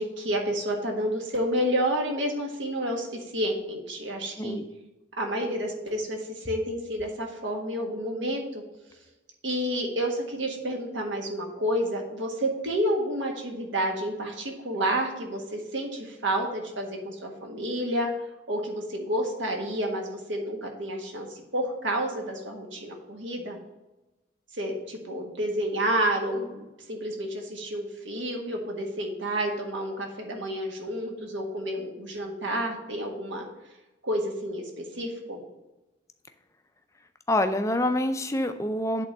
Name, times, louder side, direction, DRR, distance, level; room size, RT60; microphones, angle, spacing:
voice 1, 0.0-4.6 5.2-8.6 9.4-18.1 18.5-23.6 24.5-33.5 34.0-35.4, right 1 dB, 75° right, 2 dB, 1.6 m, -30 dB
voice 2, 37.3-39.1, left 1 dB, 15° left, 8 dB, 0.5 m, -26 dB
8.2 x 3.8 x 6.8 m, 1.0 s
head